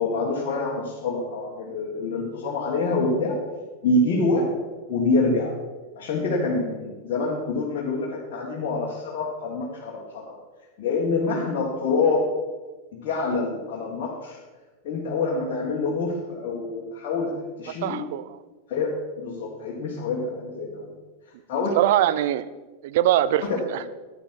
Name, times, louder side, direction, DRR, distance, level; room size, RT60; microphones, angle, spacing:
voice 1, 0.0-3.4 3.8-4.5 4.9-5.5 6.0-10.4 10.8-12.2 12.9-14.4 14.8-17.3 17.6-18.0 18.7-20.9 21.5-21.8 23.4-23.6, left 3 dB, 45° left, -4 dB, 1.9 m, -26 dB
voice 2, 17.8-18.4 21.8-22.5 22.8-23.8, right 12 dB, 50° right, 15 dB, 0.5 m, -22 dB
11.0 x 9.7 x 4.7 m, 1.2 s
figure-of-eight pair, 90°, 0 cm